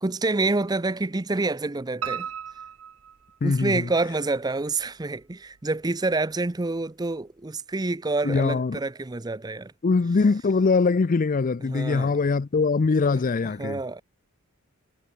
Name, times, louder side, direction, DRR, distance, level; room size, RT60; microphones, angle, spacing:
voice 1, 0.0-2.3 3.4-9.7 11.7-12.2 13.6-14.0, right 3 dB, 20° right, 0.6 m, -27 dB
Piano, 2.0-3.9 4.4-5.2 5.5-5.6 6.1-6.2 6.4-6.5, right 8 dB, 65° right, 0.7 m, -36 dB
voice 2, 3.4-3.9 8.2-8.8 9.8-13.8, left 4 dB, 35° left, 0.4 m, -22 dB
head